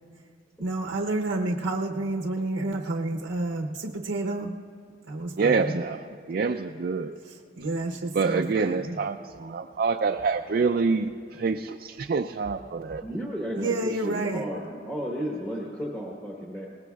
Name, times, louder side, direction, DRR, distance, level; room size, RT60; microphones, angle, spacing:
voice 1, 0.6-4.6 5.1-5.8 7.2-9.0 13.6-14.5, right 2 dB, 80° right, 2 dB, 0.7 m, -30 dB
voice 2, 5.4-6.0 6.3-7.2 8.2-11.1 11.4-13.0, right 4 dB, 50° right, 5 dB, 0.3 m, -26 dB
voice 3, 13.0-16.7, equal, 10° left, -3 dB, 1.1 m, -33 dB
21.5 x 19.0 x 2.3 m, 2.4 s
head